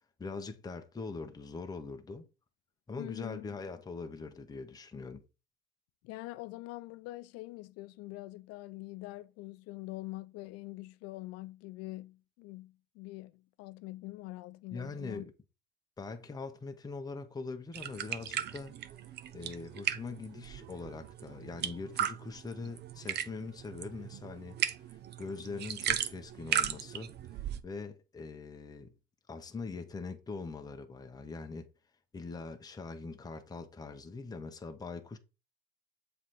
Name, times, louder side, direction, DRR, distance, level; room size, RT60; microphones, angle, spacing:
voice 1, 0.2-2.3 2.9-5.2 14.7-15.3 16.0-18.8 19.3-27.1 27.6-28.9 29.3-31.7 32.1-35.2, left 4 dB, 10° left, 0.8 m, -42 dB
voice 2, 3.0-3.5 6.0-15.3, left 19 dB, 50° left, 0.5 m, -44 dB
sound 1, 17.7-27.6, right 10 dB, 35° right, 0.6 m, -37 dB
7.3 x 3.4 x 4.0 m
hypercardioid pair, 95°, 32 cm